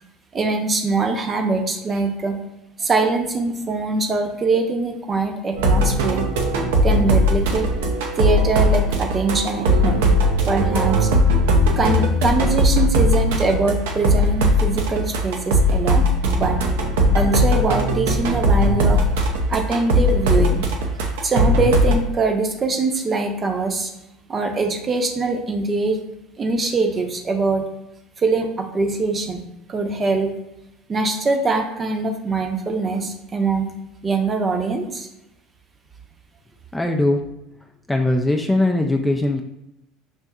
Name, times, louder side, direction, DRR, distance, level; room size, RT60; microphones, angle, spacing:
voice 1, 0.3-2.4 2.8-6.3 6.8-7.7 8.1-10.1 10.5-11.1 11.8-16.6 17.1-19.0 19.5-20.7 21.2-23.9 24.3-26.0 26.4-27.7 28.2-29.4 29.7-30.3 30.9-33.7 34.0-35.1, right 3 dB, 30° right, 4 dB, 0.7 m, -22 dB
sound 1, 5.6-21.9, equal, 80° right, 0.6 m, -19 dB
voice 2, 36.7-37.2 37.9-39.4, left 2 dB, 10° left, 3 dB, 0.4 m, -20 dB
6.0 x 2.6 x 2.3 m, 0.89 s
supercardioid pair, 90°, 0 cm